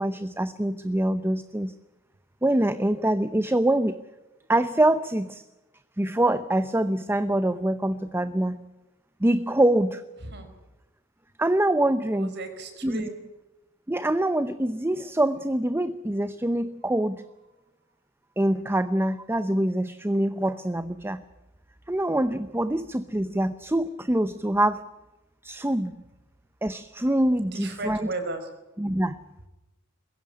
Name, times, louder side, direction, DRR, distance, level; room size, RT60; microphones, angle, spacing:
voice 1, 0.0-1.7 2.4-4.0 4.5-5.4 6.0-8.6 9.2-10.0 11.4-12.3 12.8-13.1 13.9-17.2 18.4-21.2 21.9-24.9 25.4-26.0 26.6-28.1 28.8-29.2, right 1 dB, 10° right, 12 dB, 0.7 m, -25 dB
voice 2, 12.1-13.2 27.5-28.5, right 2 dB, 55° right, 7 dB, 4.7 m, -35 dB
21.5 x 16.5 x 9.7 m, 1.0 s
head